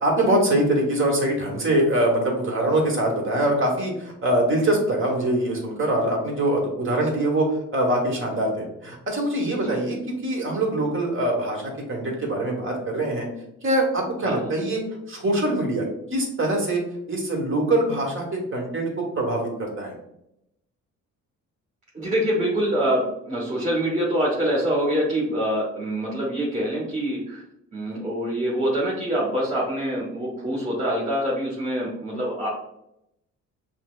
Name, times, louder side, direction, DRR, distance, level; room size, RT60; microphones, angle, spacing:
voice 1, 0.0-13.3 13.6-14.8 15.1-15.8 16.1-16.8 17.1-19.9, right 1 dB, 45° right, 0 dB, 1.3 m, -23 dB
voice 2, 21.9-27.4 27.7-32.5, equal, 25° right, -6 dB, 1.3 m, -25 dB
5.7 x 2.0 x 2.4 m, 0.80 s
cardioid pair, 90°, 30 cm